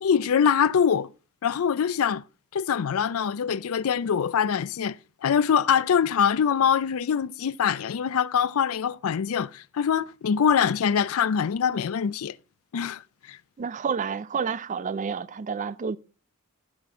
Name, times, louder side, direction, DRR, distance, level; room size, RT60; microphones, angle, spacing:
voice 1, 0.0-1.1 1.4-2.2 2.5-5.0 5.2-12.4 12.7-13.0 13.3-13.4, left 7 dB, 70° left, 0.4 m, -24 dB
voice 2, 13.6-16.0, right 6 dB, 35° right, 0.4 m, -29 dB
15.0 x 6.0 x 3.6 m
head